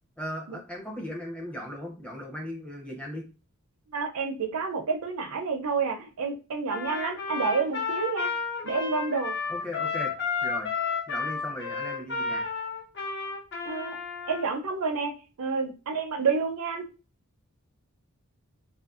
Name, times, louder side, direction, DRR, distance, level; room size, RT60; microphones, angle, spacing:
voice 1, 0.2-3.2 9.5-10.1 10.4-10.7 11.1-12.5, equal, 5° left, -1 dB, 0.6 m, -37 dB
voice 2, 3.9-8.3 8.6-9.3 13.6-14.0 14.3-16.9, right 5 dB, 85° right, 4 dB, 0.5 m, -29 dB
Trumpet, 6.7-14.5, left 5 dB, 55° left, 0.9 m, -32 dB
2.5 x 2.5 x 2.4 m, 0.33 s
head